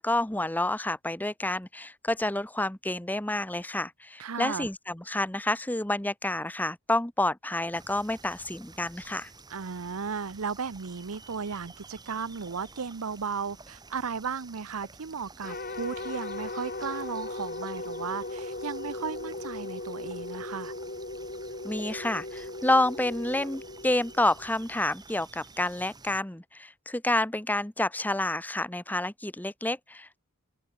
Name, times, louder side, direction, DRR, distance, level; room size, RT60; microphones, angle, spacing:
voice 1, 0.0-9.3 21.6-30.2, left 1 dB, 10° left, 1.0 m, -29 dB
voice 2, 4.2-4.7 9.5-20.7, right 5 dB, 80° right, 0.7 m, -35 dB
sound 1, 7.7-26.2, right 3 dB, 20° right, 6.1 m, -51 dB
sound 2, 15.4-24.7, left 2 dB, 40° left, 2.8 m, -38 dB
open air
head